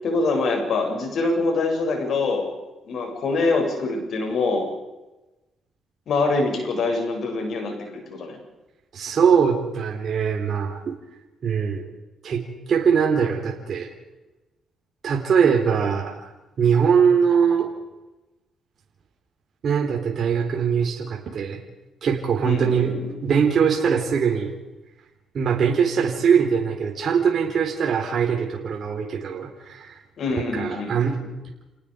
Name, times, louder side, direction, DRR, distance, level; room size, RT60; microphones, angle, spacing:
voice 1, 0.0-2.5 2.9-4.7 6.1-8.4 22.4-23.1 30.2-31.3, left 3 dB, 60° left, 2 dB, 7.7 m, -24 dB
voice 2, 8.9-10.8 11.4-11.8 12.2-13.9 15.0-16.3 16.6-17.7 19.6-21.6 22.0-23.0 23.2-24.5 25.3-30.0 30.4-31.2, right 7 dB, 55° right, 1 dB, 3.9 m, -21 dB
30.0 x 19.0 x 5.2 m, 1.0 s
cardioid pair, 90°, 0 cm